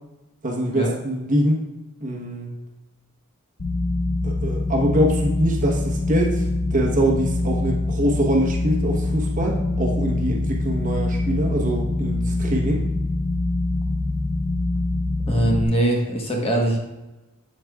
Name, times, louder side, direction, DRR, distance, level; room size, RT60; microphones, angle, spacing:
voice 1, 0.4-1.6 2.0-2.5 4.2-12.8, right 1 dB, 35° right, -1 dB, 1.1 m, -24 dB
sound 1, 3.6-15.6, left 2 dB, 80° left, 1.1 m, -24 dB
voice 2, 15.3-16.8, right 1 dB, 25° left, -1 dB, 1.2 m, -21 dB
8.0 x 7.8 x 2.4 m, 1.1 s
head